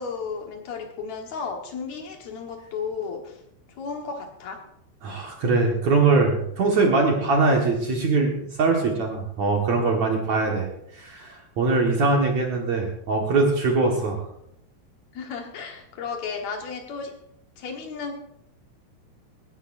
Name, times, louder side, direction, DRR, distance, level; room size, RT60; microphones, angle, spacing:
voice 1, 0.0-3.4 3.8-4.7 15.1-17.2 17.6-18.2, left 5 dB, 75° left, 2 dB, 1.6 m, -34 dB
voice 2, 5.0-10.7 10.9-14.2, right 3 dB, 60° right, 0 dB, 1.9 m, -22 dB
19.5 x 15.5 x 2.6 m, 0.76 s
omnidirectional pair, 5.6 m